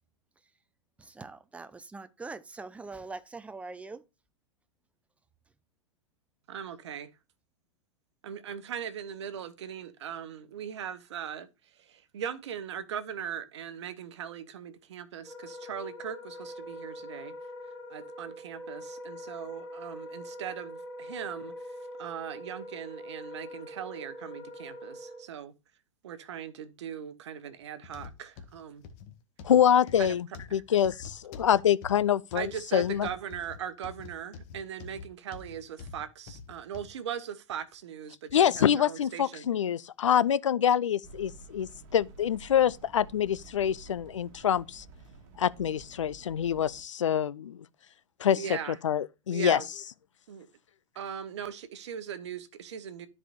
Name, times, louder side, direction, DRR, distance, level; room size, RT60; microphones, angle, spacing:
voice 1, 1.0-4.0, right 3 dB, 10° right, 0.7 m, -43 dB
voice 2, 6.5-7.1 8.2-17.3 17.9-25.5 26.0-28.8 30.0-30.2 30.5-30.6 32.3-39.5 48.3-48.8 49.3-49.7 50.3-50.5 50.9-53.1, right 8 dB, 60° right, 1.1 m, -39 dB
Wind instrument woodwind instrument, 15.2-25.3, equal, 15° left, 4.0 m, -43 dB
sound 1, 27.8-37.0 37.5-37.6 38.3-38.4, left 5 dB, 45° left, 1.3 m, -46 dB
voice 3, 29.4-30.3 30.5-33.1 38.3-44.8 45.4-47.6 48.2-48.4 48.8-49.6, left 9 dB, 75° left, 0.5 m, -26 dB
sound 2, 41.0-46.8, right 3 dB, 45° right, 1.9 m, -51 dB
13.0 x 4.8 x 2.5 m
figure-of-eight pair, 100°, 16 cm